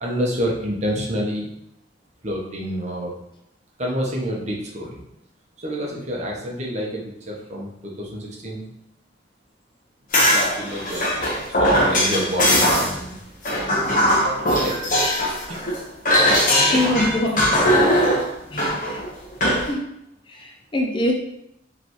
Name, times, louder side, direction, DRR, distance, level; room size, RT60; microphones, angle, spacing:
voice 1, 0.0-1.5 2.2-3.1 3.8-5.0 5.6-8.7 10.3-11.2 11.5-13.2 13.9-14.9 15.5-15.7 16.7-17.0 17.6-18.0, equal, 40° right, -2 dB, 1.0 m, -28 dB
sound 1, 10.1-13.0 13.4-15.8 16.1-19.7, equal, 45° left, 1.1 m, -20 dB
voice 2, 16.7-17.6 18.5-18.7 19.7-19.9 20.3-21.1, left 1 dB, 25° left, 2 dB, 0.4 m, -23 dB
5.0 x 3.3 x 3.1 m, 0.79 s
head